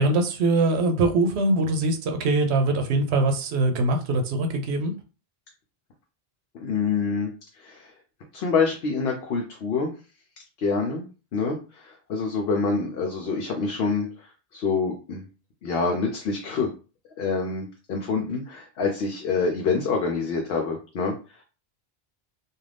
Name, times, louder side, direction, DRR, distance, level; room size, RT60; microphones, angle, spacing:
voice 1, 0.0-4.9, right 2 dB, 85° right, 5 dB, 0.9 m, -22 dB
voice 2, 6.6-7.3 7.5-7.9 8.3-9.9 10.6-11.0 11.3-15.3 15.6-16.7 17.2-21.4, left 4 dB, 70° left, 2 dB, 0.8 m, -26 dB
2.5 x 2.3 x 3.3 m, 0.34 s
omnidirectional pair, 1.1 m